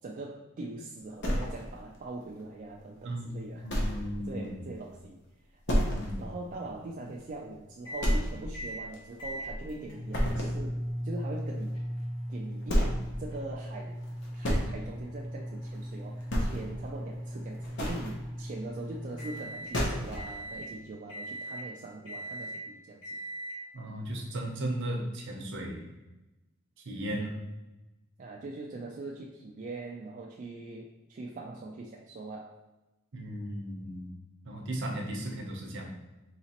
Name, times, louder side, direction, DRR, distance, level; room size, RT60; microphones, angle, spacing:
voice 1, 0.0-5.2 5.7-5.8 6.2-11.7 12.3-12.9 13.2-14.0 14.3-23.2 27.1-27.3 28.2-32.6, right 2 dB, 40° right, -2 dB, 0.4 m, -42 dB
sound 1, 1.2-2.0 2.4-2.5 3.0-3.1 3.7-4.1 4.4-4.5 4.9-5.0 5.7-6.2 6.6-6.7 7.2-7.3 8.0-8.6 8.9-9.7 10.1-10.6 12.0-12.1 12.6-13.1 14.0-14.7 15.7-15.9 16.2-16.8 17.5-18.1 19.3-19.4 19.7-20.3, equal, 60° left, 0.8 m, -29 dB
voice 2, 3.0-4.6 5.8-6.3 23.7-25.8 26.8-27.3 33.1-34.1 34.4-35.9, right 1 dB, 60° right, 0 dB, 0.7 m, -36 dB
sound 2, 7.8-8.1 8.5-8.8 9.2-19.7 20.1-20.7 21.1-21.7 22.1-22.6 23.0-23.6, equal, 85° left, 1.1 m, -38 dB
4.0 x 2.9 x 2.9 m, 1.0 s
head